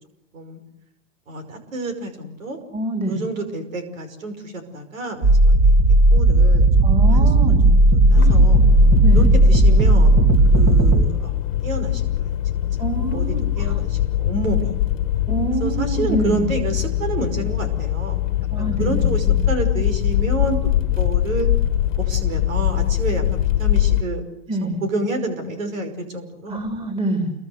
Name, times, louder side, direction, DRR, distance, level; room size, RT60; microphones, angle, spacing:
voice 1, 1.3-2.6 3.1-5.7 6.1-6.7 7.0-7.9 8.1-8.6 9.1-10.2 10.5-12.3 13.1-14.7 15.6-18.2 18.6-20.6 21.0-21.5 22.0-24.2 24.6-26.6, right 2 dB, 90° right, 8 dB, 5.7 m, -29 dB
voice 2, 2.7-3.2 6.8-7.7 8.2-8.4 9.0-9.3 12.8-13.8 15.3-16.5 18.5-19.6 24.5-24.8 26.5-27.3, right 2 dB, 15° right, 4 dB, 4.0 m, -26 dB
sound 1, 5.2-11.0, right 2 dB, 35° right, 3.2 m, -14 dB
sound 2, 8.1-24.0, left 13 dB, 75° left, 1.4 m, -22 dB
28.5 x 22.5 x 8.0 m, 0.80 s
hypercardioid pair, 110°, 38 cm